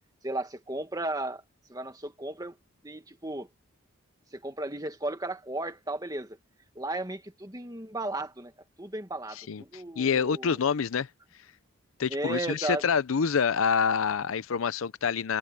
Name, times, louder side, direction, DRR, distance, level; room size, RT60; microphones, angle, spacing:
voice 1, 0.2-1.4 1.7-2.6 2.8-3.5 4.3-6.4 6.8-8.5 8.8-10.6 12.1-12.8, right 2 dB, 20° right, 1.8 m, -34 dB
voice 2, 9.5-11.1 12.0-15.4, left 6 dB, 75° left, 0.5 m, -27 dB
head